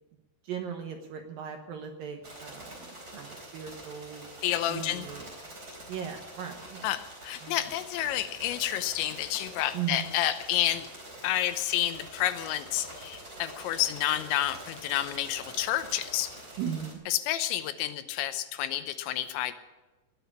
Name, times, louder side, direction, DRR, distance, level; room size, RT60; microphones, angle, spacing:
voice 1, 0.4-4.4 4.7-5.3 5.9-6.9 7.4-7.6 9.7-10.1 16.6-17.0, right 8 dB, 70° right, 4 dB, 2.4 m, -38 dB
sound 1, 2.2-16.9, right 1 dB, 20° right, 4.2 m, -46 dB
voice 2, 4.4-5.1 6.8-10.9 11.2-16.3 17.1-19.5, left 12 dB, 80° left, 11 dB, 3.1 m, -30 dB
20.0 x 7.8 x 8.6 m, 1.1 s
omnidirectional pair, 5.3 m